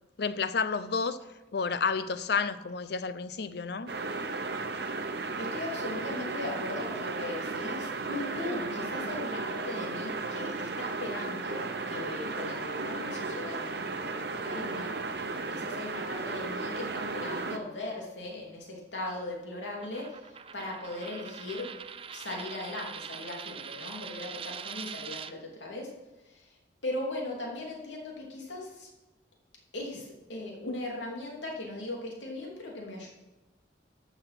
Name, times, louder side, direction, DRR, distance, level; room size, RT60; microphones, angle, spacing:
voice 1, 0.2-1.2 1.5-3.9 30.7-30.8, left 5 dB, 60° left, 0.6 m, -30 dB
sound 1, 3.9-17.6, right 3 dB, 60° right, 0.9 m, -35 dB
voice 2, 5.1-15.0 15.5-21.8 22.1-26.0 26.2-26.6 26.8-28.9 29.7-33.1, left 2 dB, 85° left, 3.0 m, -39 dB
Coin (dropping), 19.8-25.3, right 7 dB, 30° right, 0.4 m, -43 dB
13.5 x 6.1 x 6.0 m
head